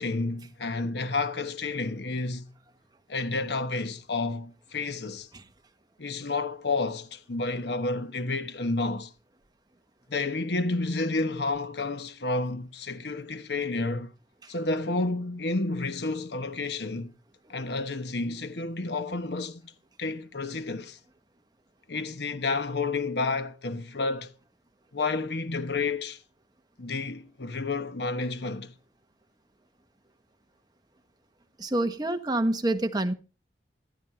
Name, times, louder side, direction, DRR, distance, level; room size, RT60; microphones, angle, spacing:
voice 1, 0.0-2.4 3.1-5.3 6.0-9.1 10.1-14.1 14.5-17.1 17.5-19.7 20.0-21.0 21.9-24.3 24.9-26.2 26.8-28.7, left 3 dB, 70° left, 1.0 m, -30 dB
voice 2, 31.6-33.1, right 1 dB, 25° right, 1.2 m, -27 dB
15.0 x 13.5 x 4.3 m
head